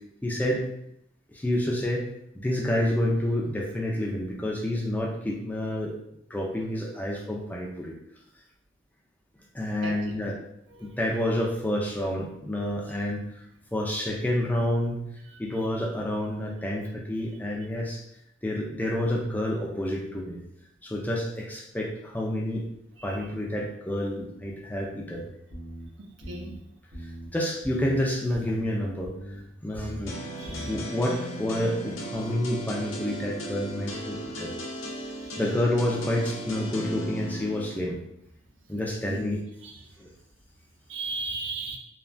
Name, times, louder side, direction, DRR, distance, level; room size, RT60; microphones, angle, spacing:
voice 1, 0.2-0.7 1.3-2.1 2.4-5.9 6.3-7.9 9.5-10.3 10.8-13.4 13.7-15.1 15.4-18.0 18.4-20.4 20.8-22.6 23.0-25.3 27.3-29.1 29.6-30.1 30.5-34.5 35.4-38.0 38.7-39.4 40.0-40.1, left 1 dB, 10° left, -2 dB, 0.3 m, -29 dB
voice 2, 9.8-10.3 10.7-11.0 15.3-15.4 23.0-23.2 26.3-26.5 30.4-30.9 35.2-35.4 39.1-39.2 39.6-39.9 40.9-41.8, right 3 dB, 70° right, 1 dB, 0.5 m, -37 dB
sound 1, 25.5-25.9 26.2-26.6 26.9-27.3 27.6-28.0 28.3-28.7 29.0-29.4 29.7-30.1 30.4-30.8, equal, 85° right, 1.0 m, -40 dB
sound 2, 30.1-37.7, right 1 dB, 90° left, 0.6 m, -36 dB
3.2 x 2.2 x 2.4 m, 0.76 s
head